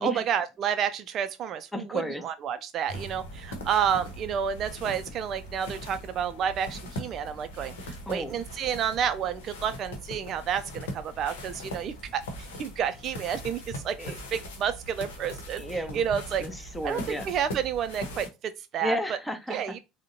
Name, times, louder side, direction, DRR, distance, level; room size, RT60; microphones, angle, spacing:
voice 1, 0.0-14.0 14.3-15.6 15.9-16.5 16.8-19.2 19.5-19.8, right 8 dB, 45° right, 0.4 m, -30 dB
voice 2, 1.7-2.2 8.1-8.4 14.0-14.2 15.6-16.0 16.4-17.2 18.8-19.6, equal, 5° left, 0.7 m, -32 dB
sound 1, 2.9-18.3, equal, 70° left, 0.8 m, -40 dB
3.6 x 2.1 x 2.6 m
figure-of-eight pair, 65°, 0 cm